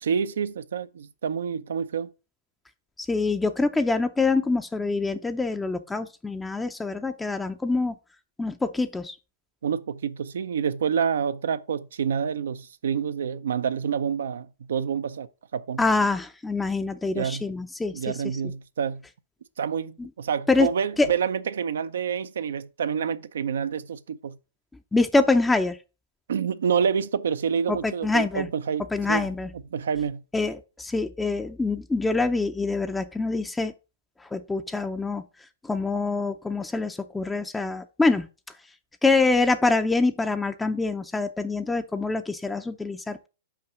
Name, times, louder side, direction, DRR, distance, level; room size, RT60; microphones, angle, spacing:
voice 1, 0.0-2.1 9.6-15.8 17.1-17.5 17.9-19.0 19.6-24.4 26.3-29.3 29.7-30.2, right 7 dB, 75° right, 0.5 m, -28 dB
voice 2, 3.1-7.9 8.4-9.1 15.8-17.9 20.0-20.1 20.5-20.7 21.0-21.1 24.9-25.8 27.7-28.5 28.9-29.5 30.3-33.7 34.3-35.2 35.6-38.3 39.0-43.3, left 3 dB, 10° left, 0.5 m, -25 dB
5.8 x 4.7 x 6.1 m
hypercardioid pair, 120°, 0 cm